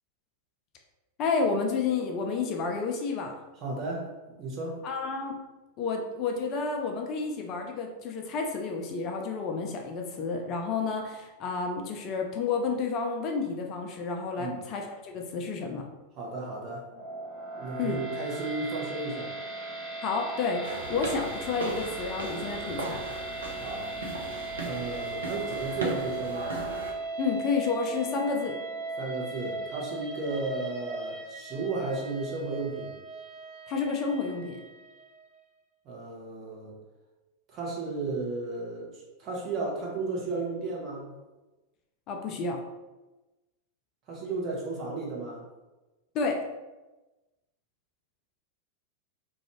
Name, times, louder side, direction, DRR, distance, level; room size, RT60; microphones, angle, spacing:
voice 1, 1.2-3.3 4.8-5.4 5.8-15.9 17.8-18.0 20.0-23.0 27.2-28.6 33.7-34.6 42.1-42.6 46.1-46.4, left 4 dB, 35° left, 2 dB, 0.3 m, -30 dB
voice 2, 3.6-4.8 14.4-14.6 16.2-16.9 17.6-19.3 23.6-24.0 24.6-26.6 29.0-32.9 35.8-36.7 37.5-41.1 44.1-45.5, right 3 dB, 35° right, -3 dB, 0.8 m, -34 dB
sound 1, 16.9-35.1, right 2 dB, 15° left, 1.0 m, -38 dB
sound 2, 20.6-26.9, right 2 dB, 70° right, 0.5 m, -37 dB
2.5 x 2.2 x 2.9 m, 1.1 s
figure-of-eight pair, 90°, 0 cm